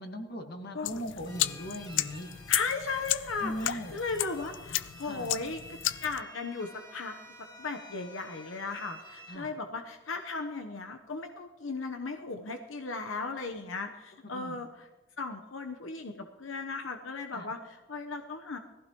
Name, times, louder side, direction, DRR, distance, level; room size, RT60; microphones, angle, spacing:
voice 1, 0.0-2.3 3.4-4.0 5.0-5.3 9.3-9.6 14.3-14.6 17.3-17.5, equal, 55° left, 4 dB, 1.8 m, -39 dB
sound 1, 0.8-6.2, left 13 dB, 70° left, 0.5 m, -34 dB
sound 2, 1.3-9.3, left 1 dB, 20° left, 2.9 m, -51 dB
voice 2, 2.5-7.1 7.6-14.9 15.2-18.6, left 4 dB, 85° left, 6 dB, 1.0 m, -36 dB
20.5 x 15.5 x 3.1 m, 1.2 s
head